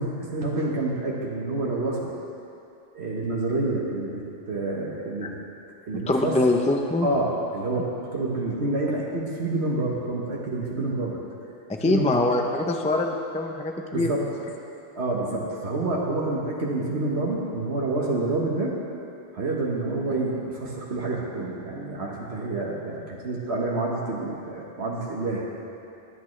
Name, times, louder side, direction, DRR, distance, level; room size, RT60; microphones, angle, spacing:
voice 1, 0.0-2.1 2.9-5.3 5.8-6.4 7.0-7.9 8.1-11.2 11.8-12.1 13.9-14.2 15.0-18.7 19.3-25.5, right 2 dB, 75° right, -4 dB, 1.6 m, -28 dB
voice 2, 6.1-7.1 11.7-14.1, left 2 dB, 10° left, 3 dB, 0.5 m, -23 dB
24.0 x 8.6 x 3.2 m, 2.7 s
omnidirectional pair, 1.1 m